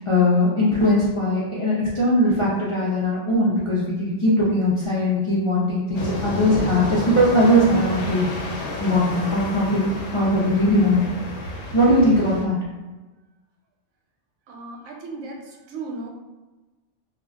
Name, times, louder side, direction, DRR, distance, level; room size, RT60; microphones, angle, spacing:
voice 1, 0.0-8.3 8.8-11.0 11.7-12.6, left 1 dB, 50° left, -8 dB, 0.4 m, -20 dB
sound 1, 5.9-12.4, left 1 dB, 75° left, 0.9 m, -30 dB
voice 2, 14.5-16.1, right 3 dB, 85° right, 0 dB, 0.9 m, -36 dB
2.3 x 2.1 x 3.4 m, 1.2 s
omnidirectional pair, 1.3 m